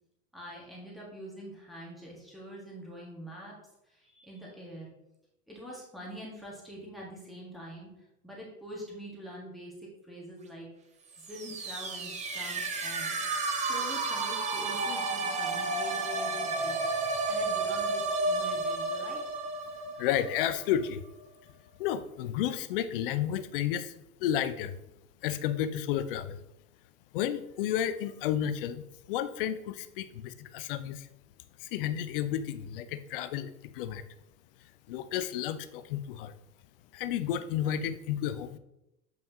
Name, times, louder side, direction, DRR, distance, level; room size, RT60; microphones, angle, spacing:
voice 1, 0.3-3.6 3.9-4.9 5.5-7.9 8.2-10.7 11.2-13.2 13.7-16.8 17.3-19.2, equal, ahead, -4 dB, 1.5 m, -45 dB
sound 1, 11.1-20.9, right 3 dB, 15° right, 0.7 m, -32 dB
voice 2, 20.0-21.0 21.8-23.9 24.2-24.8 25.2-26.4 27.1-31.1 31.6-34.0 34.9-36.3 36.9-38.6, left 10 dB, 40° left, 13 dB, 0.5 m, -32 dB
7.7 x 5.2 x 2.8 m, 0.87 s
figure-of-eight pair, 90°, 45 cm